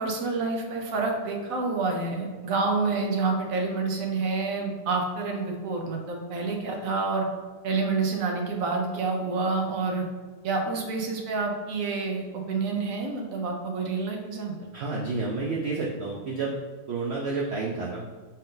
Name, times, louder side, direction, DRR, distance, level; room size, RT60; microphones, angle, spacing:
voice 1, 0.0-7.3 7.6-10.0 10.4-14.5, right 3 dB, 65° right, 1 dB, 1.0 m, -28 dB
voice 2, 14.7-16.5 16.9-18.0, right 3 dB, 90° right, -2 dB, 0.5 m, -30 dB
4.2 x 2.6 x 3.7 m, 1.5 s
omnidirectional pair, 1.7 m